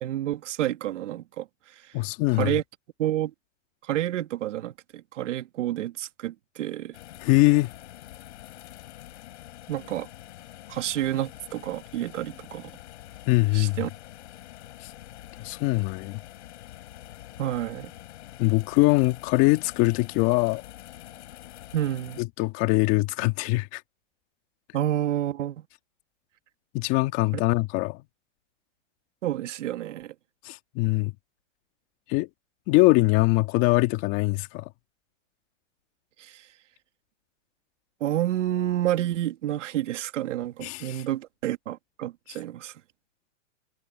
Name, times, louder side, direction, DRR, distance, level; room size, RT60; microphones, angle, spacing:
voice 1, 0.0-1.8 2.4-2.6 3.0-3.3 3.8-7.0 9.7-10.1 10.7-12.7 13.5-13.9 17.4-17.9 21.7-22.2 24.7-25.7 29.2-30.1 36.2-36.5 38.0-42.7, right 13 dB, 70° right, 2.3 m, -29 dB
voice 2, 1.9-2.6 7.2-7.7 13.3-13.8 14.8-14.9 15.4-16.2 18.4-20.6 22.2-23.8 26.7-28.0 30.4-31.1 32.1-32.3 32.7-34.7 40.6-41.0, left 21 dB, 35° left, 1.8 m, -22 dB
sound 1, 6.9-22.2, left 14 dB, 60° left, 7.2 m, -46 dB
hypercardioid pair, 150°, 38 cm